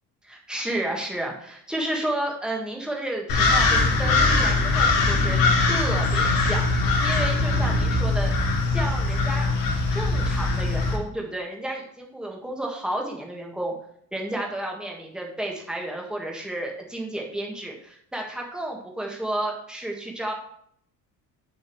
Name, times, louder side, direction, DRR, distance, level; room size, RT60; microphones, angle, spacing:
voice 1, 0.2-9.5 9.9-13.7 14.1-20.3, right 1 dB, ahead, -1 dB, 1.6 m, -32 dB
sound 1, 3.3-11.0, left 3 dB, 70° left, 2.4 m, -21 dB
7.3 x 6.8 x 4.6 m, 0.65 s
cardioid pair, 155°, 35 cm